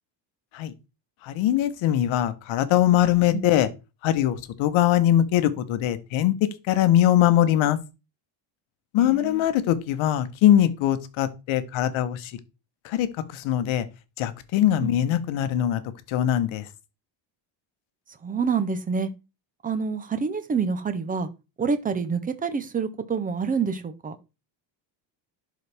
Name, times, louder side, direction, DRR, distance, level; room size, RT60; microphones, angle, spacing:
voice 1, 1.2-3.7 4.0-7.8 8.9-12.4 12.8-13.9 14.2-15.8 16.1-16.7, left 12 dB, 70° left, 1.0 m, -22 dB
voice 2, 9.0-9.4 14.8-14.9 18.2-19.1 19.6-21.3 21.6-24.2, right 5 dB, 20° right, 0.5 m, -27 dB
11.5 x 4.2 x 3.4 m
cardioid pair, 155°, 49 cm